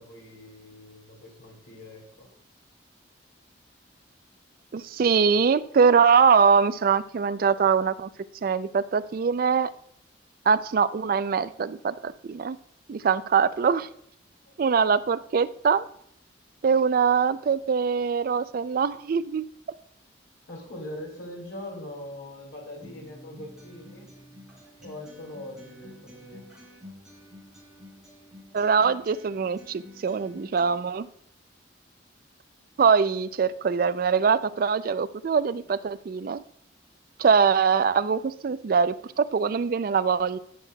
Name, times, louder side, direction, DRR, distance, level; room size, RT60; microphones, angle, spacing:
voice 1, 0.0-2.3 14.5-14.7 20.5-24.1 24.8-26.5, left 1 dB, 85° left, -1 dB, 2.4 m, -42 dB
voice 2, 4.7-8.1 8.4-9.7 10.5-12.6 12.9-13.9 14.6-15.8 16.6-19.5 28.5-31.1 32.8-36.4 37.2-40.4, right 6 dB, 50° right, 15 dB, 0.3 m, -23 dB
Acoustic guitar, 22.8-30.8, left 1 dB, 5° right, 3.3 m, -49 dB
11.0 x 6.3 x 2.2 m, 0.70 s
head